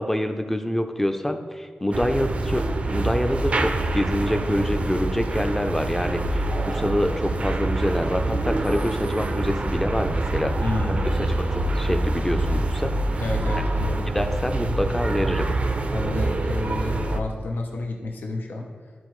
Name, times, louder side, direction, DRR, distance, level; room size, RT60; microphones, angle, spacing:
voice 1, 0.0-10.5 10.9-11.0 11.5-12.9 14.1-15.5, left 1 dB, 10° left, 6 dB, 0.5 m, -26 dB
sound 1, 1.9-17.2, right 2 dB, 40° right, 0.5 m, -25 dB
voice 2, 10.6-11.3 13.2-14.1 15.9-18.7, left 2 dB, 80° left, 1 dB, 0.8 m, -30 dB
12.5 x 4.4 x 3.1 m, 1.5 s
wide cardioid pair, 140°, 3 cm